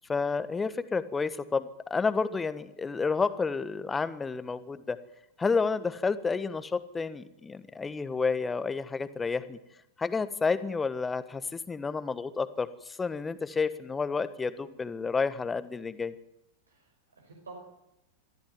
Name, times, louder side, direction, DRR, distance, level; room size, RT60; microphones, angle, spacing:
voice 1, 0.1-5.0 5.4-9.6 10.0-16.1, left 4 dB, 15° left, 14 dB, 1.3 m, -30 dB
voice 2, 16.7-17.6, right 4 dB, 75° right, 0 dB, 5.3 m, -50 dB
23.0 x 15.0 x 9.4 m, 0.87 s
figure-of-eight pair, 90°, 0 cm